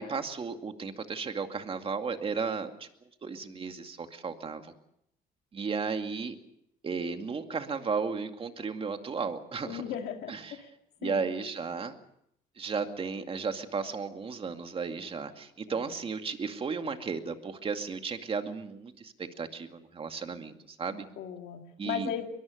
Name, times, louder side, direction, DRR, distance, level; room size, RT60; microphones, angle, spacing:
voice 1, 0.0-2.9 3.2-4.7 5.5-6.4 6.8-9.8 10.3-10.6 11.0-11.9 12.6-21.1 21.8-22.2, right 5 dB, 35° right, 6 dB, 2.3 m, -34 dB
voice 2, 9.6-10.7 11.0-11.3 15.7-16.0 20.9-22.3, left 9 dB, 75° left, 4 dB, 2.3 m, -37 dB
22.5 x 22.5 x 6.6 m, 0.74 s
cardioid pair, 110°, 17 cm